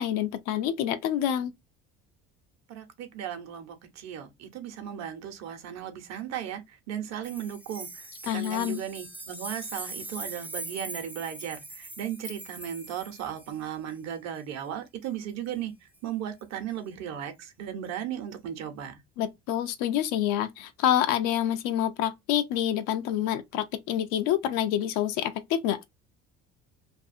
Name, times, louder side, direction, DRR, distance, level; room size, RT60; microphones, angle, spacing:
voice 1, 0.0-1.5 8.3-8.8 19.2-25.8, left 11 dB, 80° left, 0.5 m, -27 dB
voice 2, 2.7-15.7 16.0-19.0, right 9 dB, 60° right, 0.9 m, -36 dB
sound 1, 7.2-13.7 15.9-16.0, right 2 dB, 5° right, 0.3 m, -41 dB
2.5 x 2.4 x 2.6 m
cardioid pair, 105°, 30 cm